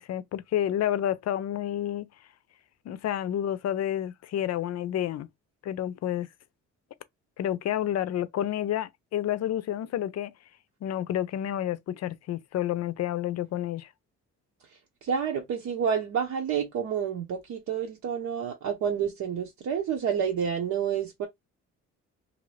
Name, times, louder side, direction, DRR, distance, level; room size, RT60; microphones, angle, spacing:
voice 1, 0.0-2.1 2.9-5.3 5.6-6.3 7.4-10.3 10.8-13.9, left 11 dB, 60° left, 0.5 m, -29 dB
voice 2, 15.0-21.3, right 7 dB, 70° right, 0.8 m, -29 dB
2.8 x 2.6 x 3.2 m
cardioid pair, 90°, 30 cm